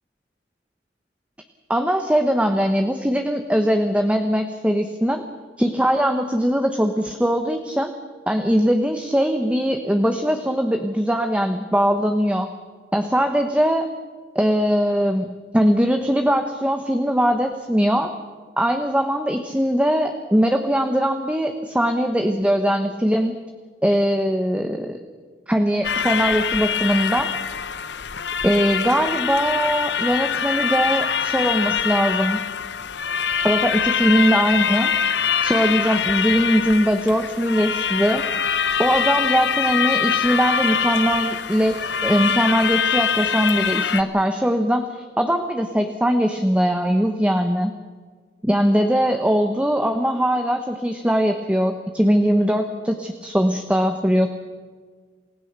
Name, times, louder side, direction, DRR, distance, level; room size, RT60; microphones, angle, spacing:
voice 1, 1.7-5.2 5.6-7.9 8.3-12.5 12.9-13.9 14.3-18.1 18.6-23.3 23.8-25.0 25.5-27.3 28.4-32.4 33.4-34.9 35.4-38.2 38.8-47.7 48.4-54.3, equal, 5° right, 6 dB, 1.1 m, -21 dB
sound 1, 25.8-44.0, left 7 dB, 70° left, 1.0 m, -24 dB
28.0 x 16.5 x 6.8 m, 1.5 s
head